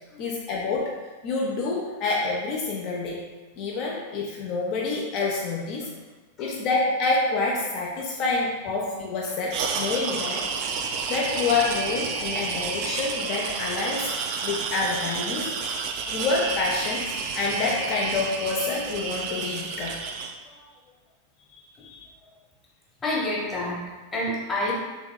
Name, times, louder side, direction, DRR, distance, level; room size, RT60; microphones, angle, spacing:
voice 1, 0.2-1.0 1.2-3.2 3.6-5.9 6.4-10.4 10.8-14.1 14.4-15.5 16.1-20.0 21.8-22.0, left 3 dB, 40° left, -3 dB, 0.5 m, -27 dB
sound 1, 9.5-20.3, right 5 dB, 45° right, 0.3 m, -30 dB
voice 2, 23.0-24.8, left 1 dB, 15° left, -5 dB, 1.0 m, -29 dB
3.5 x 3.0 x 2.2 m, 1.3 s
figure-of-eight pair, 90°, 0 cm